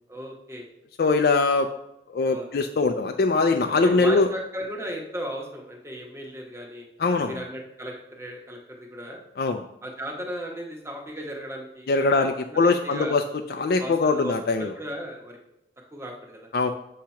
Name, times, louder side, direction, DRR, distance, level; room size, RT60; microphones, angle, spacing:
voice 1, 0.1-0.7 2.3-2.5 3.8-6.9 7.3-9.2 9.8-13.2 13.8-15.4 15.9-16.5, equal, 15° right, 0 dB, 1.0 m, -36 dB
voice 2, 1.0-1.7 2.1-4.3 7.0-7.4 9.4-9.6 11.9-13.2 13.5-14.7 16.5-16.7, left 3 dB, 55° left, 5 dB, 0.4 m, -22 dB
7.3 x 2.9 x 5.7 m, 0.82 s
head